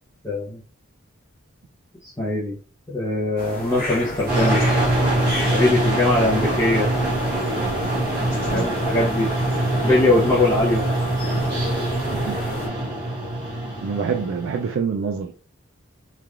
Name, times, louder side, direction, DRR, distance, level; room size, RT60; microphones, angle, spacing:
voice 1, 0.2-0.6 2.0-2.6 2.9-4.7 5.4-6.9 8.5-9.3 9.8-10.8, left 2 dB, 15° left, 0.6 m, -21 dB
sound 1, 3.4-12.7, equal, 45° left, 0.8 m, -32 dB
sound 2, 4.3-14.7, right 1 dB, 45° right, 1.3 m, -24 dB
voice 2, 13.8-15.3, right 6 dB, 65° right, 0.3 m, -26 dB
3.2 x 2.3 x 2.4 m
head